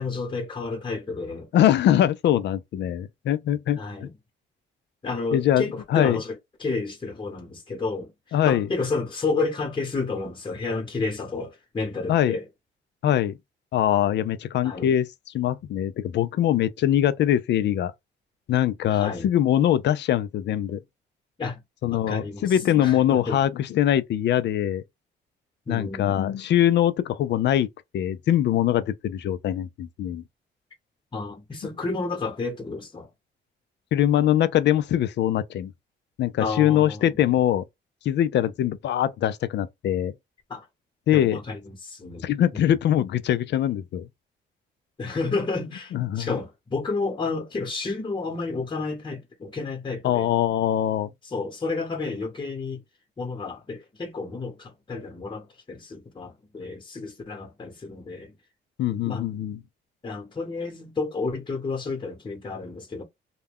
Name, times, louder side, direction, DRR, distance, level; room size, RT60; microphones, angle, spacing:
voice 1, 0.0-1.5 3.7-4.1 5.0-12.4 14.6-15.0 18.9-19.3 21.4-21.6 21.9-23.4 25.7-26.2 31.1-33.1 36.4-37.4 40.5-40.7 41.1-42.3 42.5-42.8 45.0-50.3 51.2-52.8 53.2-58.4 58.9-59.3 60.0-63.0, left 3 dB, 25° left, 1.1 m, -31 dB
voice 2, 1.5-4.1 5.3-6.2 8.3-8.7 12.1-12.4 13.0-13.3 13.7-15.1 15.3-17.9 18.5-20.8 21.8-24.8 25.7-27.7 27.9-30.2 33.9-35.7 36.2-37.6 38.0-40.1 41.1-41.4 42.2-44.1 45.9-46.4 50.0-51.1 58.8-59.6, left 11 dB, 60° left, 0.4 m, -22 dB
2.3 x 2.1 x 3.5 m
cardioid pair, 90°, 20 cm